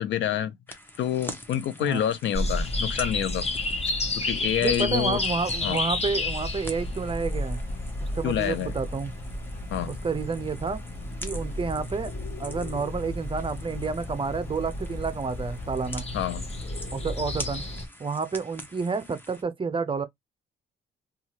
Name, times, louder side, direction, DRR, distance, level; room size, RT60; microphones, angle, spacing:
voice 1, 0.0-3.5 4.2-5.2 5.6-5.8 8.2-8.7 9.7-9.9 16.1-16.4, left 10 dB, 70° left, 0.5 m, -28 dB
sound 1, 0.7-19.4, left 1 dB, 10° left, 0.8 m, -45 dB
sound 2, 2.3-17.9, left 2 dB, 30° left, 1.0 m, -32 dB
voice 2, 4.6-7.6 8.0-9.1 9.9-10.8 11.2-12.1 12.4-16.1 16.9-17.6 18.0-20.0, right 5 dB, 25° right, 0.6 m, -30 dB
2.7 x 2.4 x 2.8 m
cardioid pair, 90°, 20 cm